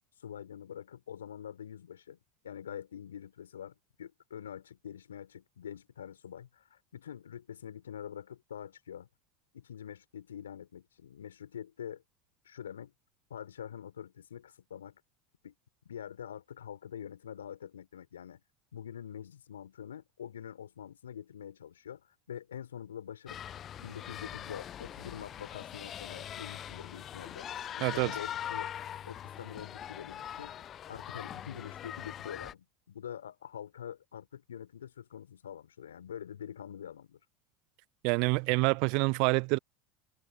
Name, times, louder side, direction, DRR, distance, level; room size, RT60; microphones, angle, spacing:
voice 1, 0.2-2.2 2.4-9.1 9.5-12.0 12.4-12.9 13.3-15.0 15.4-15.5 15.8-18.4 18.7-23.4 23.8-27.5 27.8-28.7 29.0-37.2, left 9 dB, 80° left, 4.6 m, -45 dB
sound 1, 23.3-32.5, left 10 dB, 40° left, 0.8 m, -42 dB
voice 2, 38.0-39.6, right 32 dB, 60° right, 0.4 m, -27 dB
figure-of-eight pair, 80°, 0 cm